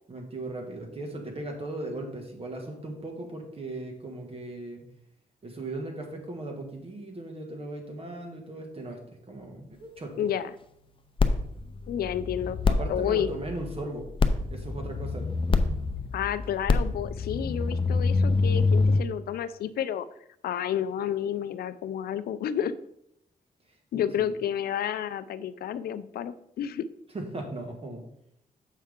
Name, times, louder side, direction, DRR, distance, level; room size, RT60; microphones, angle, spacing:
voice 1, 0.1-4.8 5.4-10.3 12.7-14.1 14.5-15.3 23.7-24.3 27.1-28.0, right 2 dB, 40° right, 2 dB, 1.8 m, -38 dB
voice 2, 10.2-10.5 11.9-12.6 12.9-13.3 16.1-20.1 20.4-22.7 23.9-26.8, left 9 dB, 85° left, 14 dB, 0.4 m, -30 dB
sound 1, 11.2-19.0, left 3 dB, 35° left, 0.7 m, -26 dB
7.3 x 5.5 x 3.7 m, 0.75 s
cardioid pair, 80°, 15 cm